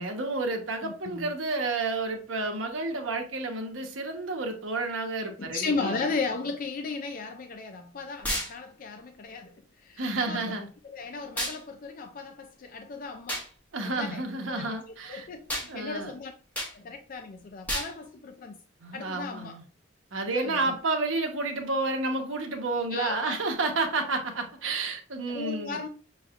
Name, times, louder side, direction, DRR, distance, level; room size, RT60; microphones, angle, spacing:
voice 1, 0.0-6.1 10.0-10.7 13.7-15.3 15.7-16.1 18.8-19.6 20.1-25.8, right 3 dB, 80° right, 1.1 m, -30 dB
voice 2, 0.8-1.3 5.4-10.5 10.8-13.5 13.8-16.3 16.7-18.6 18.9-19.6 20.3-20.8 22.9-23.4 25.3-25.9, left 4 dB, 45° left, 0.4 m, -36 dB
sound 1, 8.2-8.5 11.4-11.6 13.3-13.5 15.5-15.7 16.6-16.7 17.7-17.9, equal, 10° left, 1.0 m, -30 dB
6.2 x 3.2 x 2.4 m
head